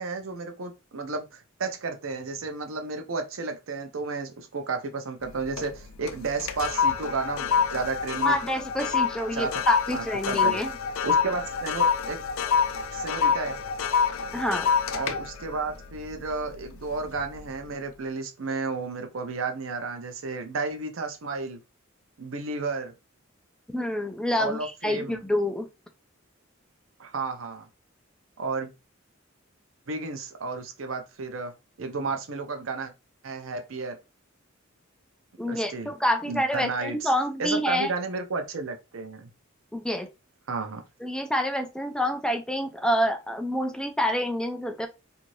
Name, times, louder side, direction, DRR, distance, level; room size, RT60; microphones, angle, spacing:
voice 1, 0.0-8.4 9.3-9.5 9.9-10.6 11.0-12.2 12.9-13.6 15.0-21.6 22.2-22.9 24.4-25.2 27.0-27.7 28.4-28.7 29.9-31.5 31.8-32.9 33.2-34.0 35.5-35.9 36.3-37.1 37.4-39.3 40.5-40.8, right 4 dB, 75° right, 0.6 m, -32 dB
sound 1, 5.2-5.8 6.1-16.6 17.1-17.4, left 6 dB, 85° left, 0.4 m, -27 dB
voice 2, 8.2-10.7 14.3-14.7 23.7-25.7 35.4-37.9 39.7-40.1 41.0-44.9, equal, 5° left, 0.3 m, -27 dB
3.1 x 2.6 x 2.6 m
head